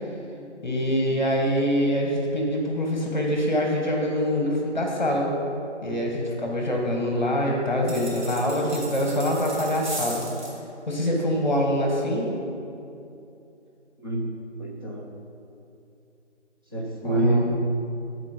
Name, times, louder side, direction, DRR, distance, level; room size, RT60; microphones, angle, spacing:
voice 1, 0.6-5.3 5.8-10.2 10.9-12.3 17.0-17.5, equal, 40° left, 0 dB, 1.4 m, -25 dB
sound 1, 7.8-10.6, right 1 dB, 40° right, 1.7 m, -37 dB
voice 2, 14.0-14.3 14.6-15.1 16.7-17.5, right 1 dB, 20° right, -4 dB, 0.7 m, -25 dB
12.5 x 4.4 x 5.2 m, 2.7 s
figure-of-eight pair, 165°, 36 cm